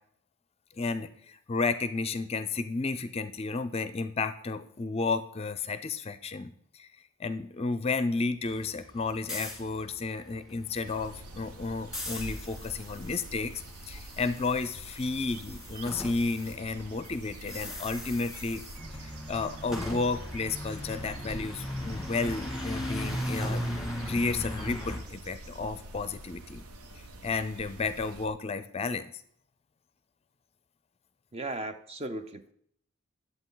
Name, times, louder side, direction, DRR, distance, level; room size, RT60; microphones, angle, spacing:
voice 1, 0.8-6.9 7.2-18.6 19.0-23.6 24.1-26.6 27.2-29.1, left 4 dB, 25° left, 12 dB, 0.5 m, -32 dB
sound 1, 8.5-16.5 16.8-25.0, left 1 dB, ahead, 1.7 m, -38 dB
sound 2, 10.8-28.3, right 2 dB, 85° right, 0.9 m, -46 dB
voice 2, 31.3-32.5, right 2 dB, 25° right, 9 dB, 0.6 m, -36 dB
10.5 x 7.9 x 3.9 m, 0.67 s
head